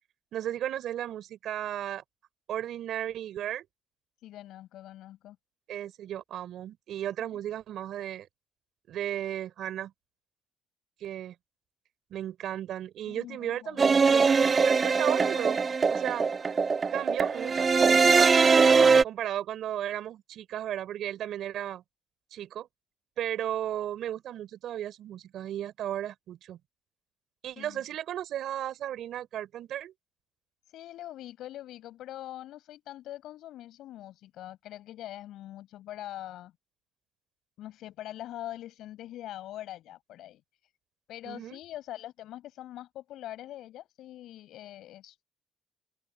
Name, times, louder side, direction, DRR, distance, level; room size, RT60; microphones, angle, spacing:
voice 1, 0.3-2.0 2.5-3.7 5.7-8.3 8.9-9.9 11.0-11.3 12.1-15.6 15.9-16.2 16.9-18.3 19.0-21.8 22.3-22.7 23.2-26.6 27.4-29.9 41.2-41.6, right 11 dB, 75° right, 4.8 m, -35 dB
voice 2, 4.2-5.4 13.1-14.0 27.6-27.8 30.7-36.5 37.6-40.4 41.1-45.2, left 13 dB, 85° left, 7.6 m, -43 dB
sound 1, 13.8-19.0, right 5 dB, 40° right, 1.6 m, -22 dB
cardioid pair, 90°, 0 cm